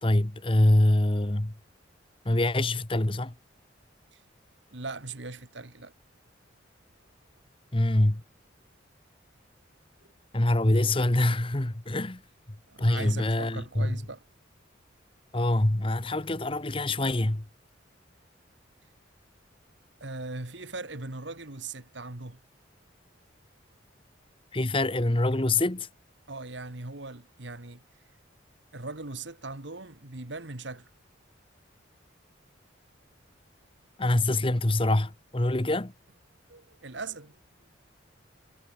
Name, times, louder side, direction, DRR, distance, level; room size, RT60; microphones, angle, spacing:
voice 1, 0.0-1.5 2.2-3.3 7.7-8.2 10.3-12.2 12.8-13.9 15.3-17.4 24.5-25.9 34.0-35.9, left 1 dB, 25° left, 1.2 m, -25 dB
voice 2, 4.7-5.9 12.7-14.2 20.0-22.4 26.3-27.8 28.7-30.9 36.5-37.4, right 3 dB, 70° right, 2.1 m, -39 dB
head